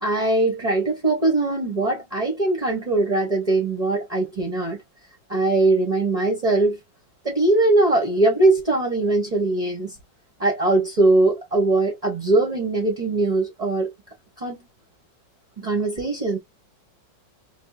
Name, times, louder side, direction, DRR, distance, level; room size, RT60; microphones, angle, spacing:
voice 1, 0.0-4.8 5.3-6.8 7.2-10.0 10.4-13.9 14.4-14.6 15.6-16.4, right 2 dB, 40° right, 0.5 m, -21 dB
3.4 x 2.1 x 2.4 m
omnidirectional pair, 2.0 m